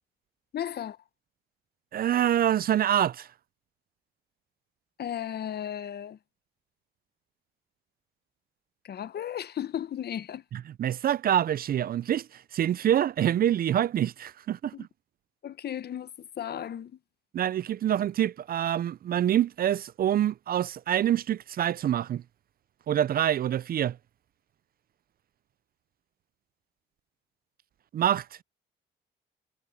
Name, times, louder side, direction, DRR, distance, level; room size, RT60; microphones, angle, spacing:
voice 1, 0.5-1.0 5.0-6.2 8.8-10.4 14.7-14.9 15.4-16.9, left 10 dB, 55° left, 0.9 m, -35 dB
voice 2, 1.9-3.3 10.5-14.9 17.3-22.2 22.9-24.0 27.9-28.4, right 11 dB, 50° right, 0.4 m, -26 dB
cardioid pair, 90°, 20 cm